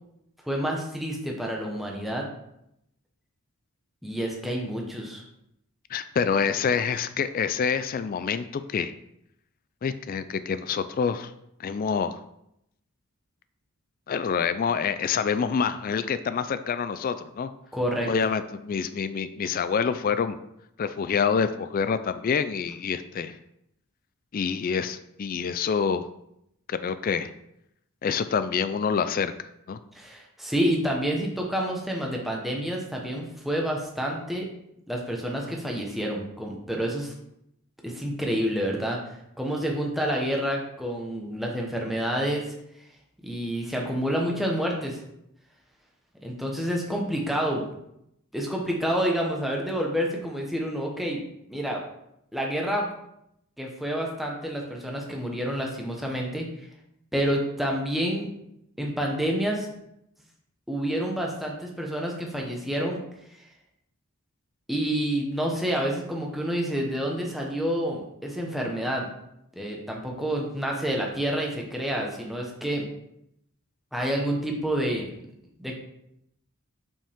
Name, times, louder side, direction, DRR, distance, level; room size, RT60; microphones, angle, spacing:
voice 1, 0.4-2.2 4.0-5.2 17.7-18.1 29.9-34.5 34.9-37.1 37.8-39.0 39.4-42.5 43.2-45.0 46.2-47.7 48.3-51.2 51.5-51.8 52.3-52.9 53.6-56.4 57.1-58.3 58.8-59.7 60.7-63.0 64.7-69.1 69.5-72.8 73.9-75.1 75.6-75.8, equal, ahead, -1 dB, 1.1 m, -28 dB
voice 2, 5.9-8.9 9.8-11.3 11.6-12.2 14.1-17.5 18.1-20.4 20.8-23.4 24.3-26.1 26.7-27.3 28.0-29.8, left 6 dB, 40° left, 12 dB, 0.3 m, -27 dB
7.1 x 5.7 x 3.6 m, 0.79 s
head